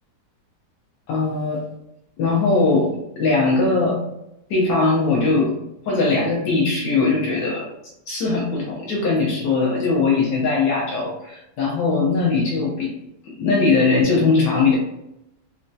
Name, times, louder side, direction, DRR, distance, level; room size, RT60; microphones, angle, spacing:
voice 1, 1.1-1.6 2.2-4.0 4.5-5.6 5.9-7.7 8.1-12.9 13.3-14.8, left 3 dB, 90° left, -3 dB, 1.4 m, -20 dB
4.1 x 2.6 x 2.2 m, 0.85 s
omnidirectional pair, 1.8 m